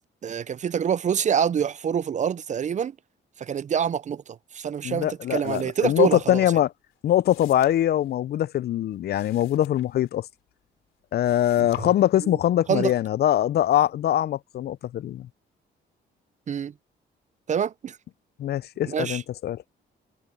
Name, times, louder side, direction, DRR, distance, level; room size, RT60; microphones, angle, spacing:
voice 1, 0.2-2.9 3.4-6.4 11.6-11.9 12.2-12.4 12.7-12.9 16.5-16.7 17.5-18.0 18.9-19.2, right 8 dB, 40° right, 0.4 m, -26 dB
voice 2, 4.8-6.7 7.0-10.3 11.1-15.3 18.4-19.6, left 12 dB, 55° left, 0.4 m, -23 dB
sound 1, 5.4-6.7 6.9-10.7 11.0-12.5 13.0-13.5, left 13 dB, 90° left, 2.8 m, -53 dB
cardioid pair, 90°, 20 cm